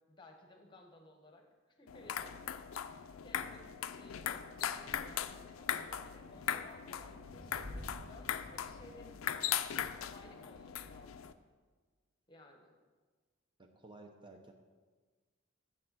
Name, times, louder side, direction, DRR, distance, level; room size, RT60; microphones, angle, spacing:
voice 1, 0.1-2.4 3.2-9.5 10.0-11.3 12.3-12.7, left 1 dB, 25° left, 2 dB, 1.2 m, -58 dB
sound 1, 1.9-11.3, left 9 dB, 75° left, 0.4 m, -39 dB
Thunder / Rain, 3.9-11.5, left 1 dB, 80° right, 1.8 m, -55 dB
voice 2, 13.6-14.5, right 2 dB, 25° right, 3 dB, 0.7 m, -54 dB
6.7 x 6.5 x 7.5 m, 1.4 s
head